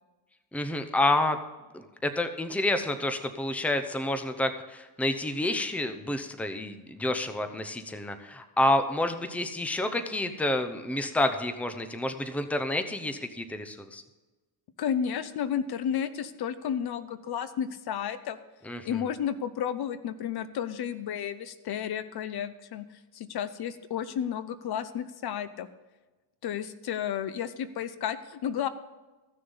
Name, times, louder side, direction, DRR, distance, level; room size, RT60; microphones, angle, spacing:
voice 1, 0.5-1.4 1.7-14.0 18.7-19.0, left 1 dB, 5° left, 8 dB, 0.7 m, -29 dB
voice 2, 14.8-18.4 18.8-22.9 23.1-25.7 26.4-28.7, left 8 dB, 55° left, 13 dB, 0.7 m, -32 dB
15.0 x 6.7 x 5.5 m, 1.2 s
cardioid pair, 125°, 47 cm